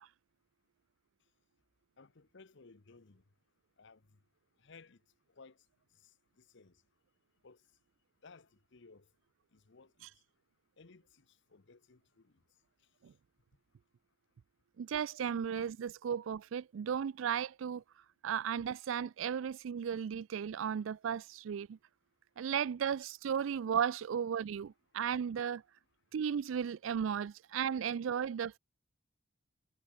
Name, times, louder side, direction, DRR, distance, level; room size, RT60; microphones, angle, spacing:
voice 1, 2.0-3.2 3.8-4.2 4.6-5.0 5.3-5.6 5.9-6.1 6.4-6.8 7.4-7.6 8.2-9.1 9.5-10.1 10.8-12.3, left 4 dB, 65° left, 1.0 m, -59 dB
voice 2, 14.8-17.8 18.2-21.8 22.4-25.6 26.1-28.6, right 8 dB, 75° right, 0.4 m, -35 dB
head